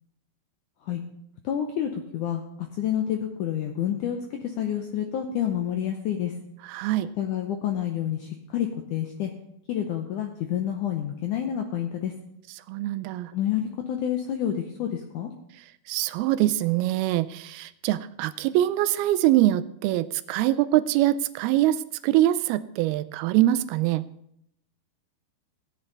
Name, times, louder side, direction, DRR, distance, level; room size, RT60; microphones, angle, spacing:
voice 1, 1.4-2.4 2.7-6.3 7.2-9.3 9.7-12.1 13.3-15.3, left 10 dB, 75° left, 4 dB, 1.9 m, -28 dB
voice 2, 6.7-7.1 12.7-13.3 15.9-24.1, right 14 dB, 80° right, 15 dB, 2.4 m, -24 dB
15.5 x 9.5 x 4.0 m, 0.75 s
omnidirectional pair, 4.5 m